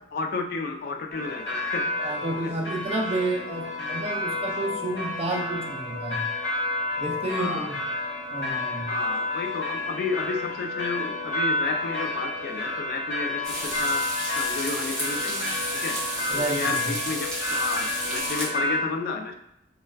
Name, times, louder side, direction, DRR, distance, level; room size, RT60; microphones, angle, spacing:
voice 1, 0.1-1.9 2.4-2.5 7.3-7.7 8.9-14.1 14.3-16.0 16.3-19.3, left 4 dB, 50° left, 4 dB, 0.3 m, -32 dB
sound 1, 1.1-18.8, left 2 dB, 75° left, 0.8 m, -30 dB
voice 2, 2.0-6.2 7.0-7.8 8.3-8.9 16.3-17.0, right 2 dB, 35° right, 1 dB, 0.4 m, -30 dB
sound 2, 13.4-18.5, equal, 5° left, 0.7 m, -32 dB
2.2 x 2.2 x 3.2 m, 0.81 s
head